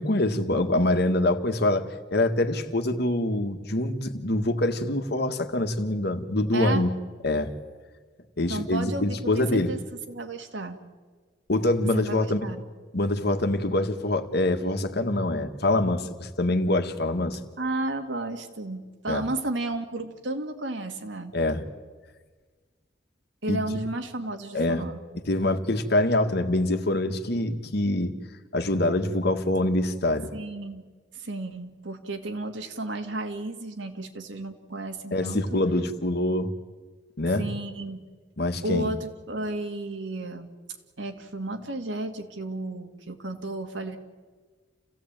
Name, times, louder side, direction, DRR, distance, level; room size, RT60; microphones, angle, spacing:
voice 1, 0.0-7.0 7.2-7.5 8.4-9.7 11.5-12.4 12.9-17.4 19.1-19.2 21.3-21.6 23.5-23.6 24.5-24.8 25.3-28.2 28.5-30.3 35.1-36.6 37.2-37.5 38.4-38.9, left 1 dB, 60° left, 7 dB, 1.8 m, -25 dB
voice 2, 6.5-6.9 8.5-9.8 10.1-10.8 11.8-12.6 17.6-21.4 23.4-25.0 30.3-35.4 37.4-38.1 38.6-40.5 41.0-44.0, right 2 dB, 80° right, 6 dB, 2.3 m, -33 dB
28.5 x 16.5 x 9.0 m, 1.4 s
head